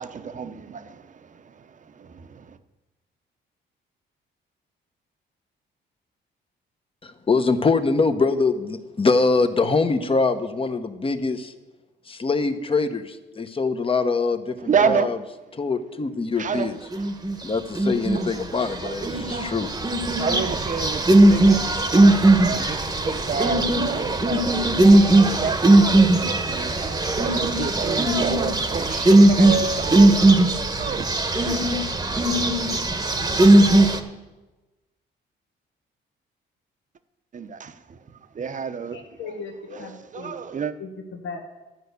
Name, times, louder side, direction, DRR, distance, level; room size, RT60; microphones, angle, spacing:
voice 1, 0.0-2.6 14.6-15.2 16.4-17.3 18.1-21.8 22.2-24.6 25.4-30.3 30.7-31.7 37.3-39.3 39.7-40.7, right 6 dB, 40° right, 0.8 m, -30 dB
voice 2, 7.0-11.5 12.1-15.2 15.5-16.7 17.4-19.7, left 4 dB, 25° left, 1.0 m, -23 dB
sound 1, 16.9-17.3 17.8-18.3 18.8-34.0, right 2 dB, 20° right, 1.1 m, -18 dB
voice 3, 38.9-40.4 40.8-41.4, left 4 dB, 70° left, 1.4 m, -37 dB
12.5 x 5.5 x 8.2 m
cardioid pair, 90°, 20 cm